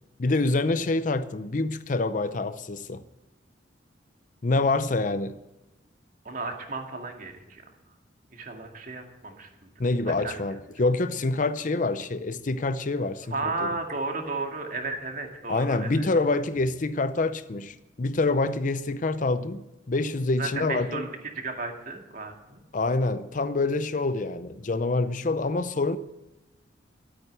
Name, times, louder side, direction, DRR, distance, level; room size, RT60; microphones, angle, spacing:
voice 1, 0.2-3.0 4.4-5.3 9.8-13.3 13.6-13.7 15.5-21.1 22.7-26.0, left 3 dB, 45° left, 0.6 m, -26 dB
voice 2, 6.2-7.6 8.3-9.7 10.1-10.4 13.3-16.1 20.4-21.1 21.3-22.6, right 3 dB, 45° right, 2.2 m, -34 dB
13.0 x 9.1 x 8.2 m
head